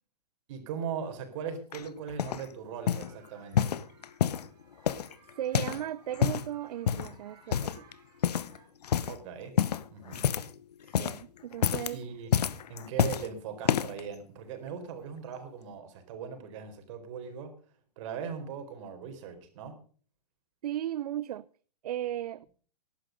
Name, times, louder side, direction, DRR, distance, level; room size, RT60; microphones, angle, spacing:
voice 1, 0.5-3.7 9.1-9.6 9.9-10.3 11.9-12.3 12.7-17.5 18.0-19.8, right 7 dB, 50° right, 4.4 m, -39 dB
sound 1, 1.7-2.5 2.9-3.1 3.5-4.5 4.9-5.8 6.1-6.5 6.9-7.2 7.5-7.9 8.2-8.6 8.8-9.2 9.6-10.6 10.8-11.2 11.5-12.0 12.3-13.3 13.6-14.0 14.7-14.8, left 9 dB, 75° left, 1.0 m, -28 dB
sound 2, 2.8-8.7, right 5 dB, 20° right, 6.5 m, -60 dB
voice 2, 5.4-7.8 10.8-12.0 20.6-21.5 21.8-22.5, right 12 dB, 70° right, 0.6 m, -36 dB
16.5 x 12.0 x 5.2 m
hypercardioid pair, 135°, 20 cm